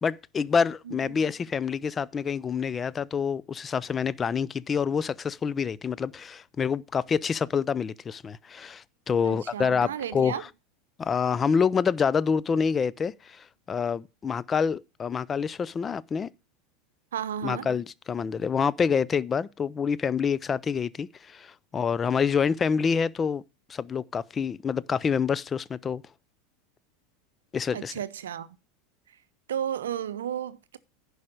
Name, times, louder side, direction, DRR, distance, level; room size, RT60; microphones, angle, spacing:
voice 1, 0.0-10.4 11.0-16.3 17.4-23.4 23.7-26.0 27.5-27.9, left 6 dB, 25° left, 0.5 m, -27 dB
voice 2, 0.9-1.3 9.2-10.4 17.1-17.7 27.7-28.6 29.5-30.8, right 9 dB, 75° right, 0.7 m, -33 dB
11.0 x 4.9 x 6.5 m
hypercardioid pair, 85°, 0 cm